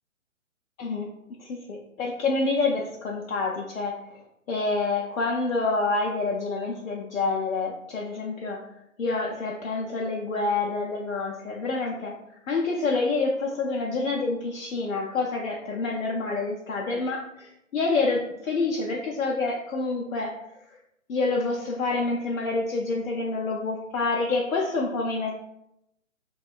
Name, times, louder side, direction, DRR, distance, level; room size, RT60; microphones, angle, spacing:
voice 1, 0.8-1.1 1.4-4.0 4.5-8.6 9.0-12.2 12.5-20.4 21.1-25.4, left 3 dB, 80° left, -2 dB, 0.5 m, -27 dB
2.7 x 2.2 x 2.2 m, 0.82 s
figure-of-eight pair, 130°, 40 cm